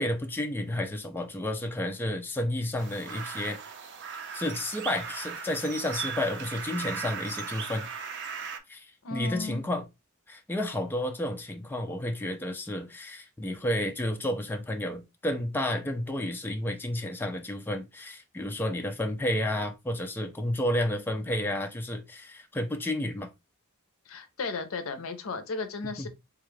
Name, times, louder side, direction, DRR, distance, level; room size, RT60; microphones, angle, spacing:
voice 1, 0.0-3.6 4.3-7.9 8.7-9.8 10.3-23.3 26.0-26.1, left 1 dB, 10° left, 0.4 m, -31 dB
sound 1, 2.8-8.6, right 6 dB, 60° right, 0.5 m, -38 dB
voice 2, 9.0-9.6 24.1-26.1, left 3 dB, 75° left, 0.6 m, -35 dB
3.6 x 2.3 x 3.1 m
head